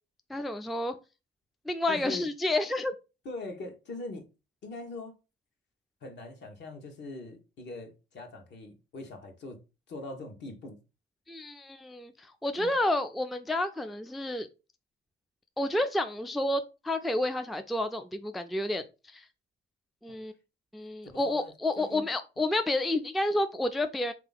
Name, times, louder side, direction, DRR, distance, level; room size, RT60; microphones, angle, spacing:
voice 1, 0.3-1.0 1.7-2.9 11.3-12.1 12.4-14.5 15.6-18.8 19.1-19.2 20.0-20.3 20.7-24.1, left 1 dB, ahead, 0.3 m, -30 dB
voice 2, 1.9-2.3 3.2-4.3 4.6-5.2 6.0-9.6 9.9-10.8 12.6-12.7 21.0-22.1, left 2 dB, 60° left, 1.1 m, -42 dB
3.6 x 2.8 x 3.9 m
cardioid pair, 90°, 20 cm